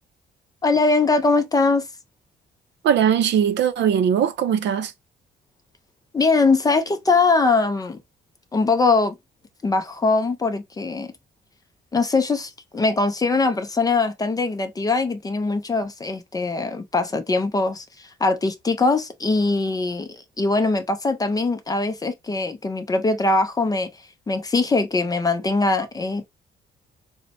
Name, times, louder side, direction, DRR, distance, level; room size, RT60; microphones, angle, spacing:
voice 1, 0.6-1.9 6.1-8.0 8.5-9.2 9.6-11.1 11.9-23.9 24.3-26.3, left 3 dB, 20° left, 0.4 m, -21 dB
voice 2, 2.8-4.9, right 8 dB, 65° right, 0.5 m, -20 dB
4.1 x 2.1 x 2.7 m
cardioid pair, 145°, 20 cm